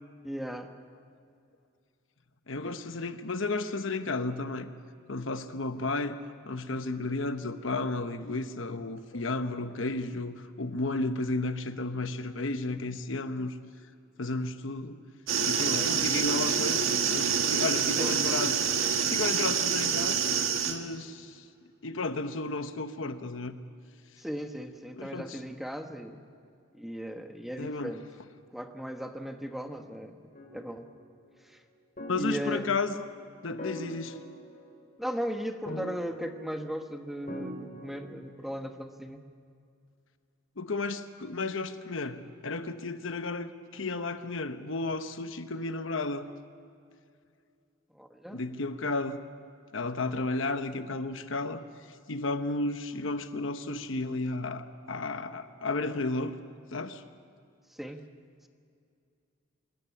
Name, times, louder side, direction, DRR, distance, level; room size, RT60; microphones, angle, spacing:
voice 1, 0.2-0.7 2.5-2.8 15.7-16.2 18.0-18.4 24.2-26.2 26.7-28.0 28.5-30.2 30.5-30.9 31.4-31.6 32.2-32.7 35.0-39.2 47.9-48.4 57.7-58.0, equal, ahead, 5 dB, 1.2 m, -37 dB
voice 2, 2.5-4.7 5.1-6.1 6.4-13.6 14.2-15.0 15.5-16.8 17.1-18.5 19.1-20.3 20.6-21.4 21.8-23.6 24.9-25.4 27.6-28.0 32.1-33.0 33.4-34.2 40.6-46.3 48.3-49.2 49.7-51.6 52.1-56.4 56.7-57.0, left 3 dB, 65° left, 10 dB, 1.0 m, -33 dB
sound 1, 15.3-20.8, right 7 dB, 75° right, 1.8 m, -27 dB
sound 2, 30.3-30.9 32.0-33.0 33.6-35.0 35.7-36.7 37.3-38.4, equal, 40° left, 4.3 m, -43 dB
26.0 x 13.5 x 9.7 m, 2.4 s
head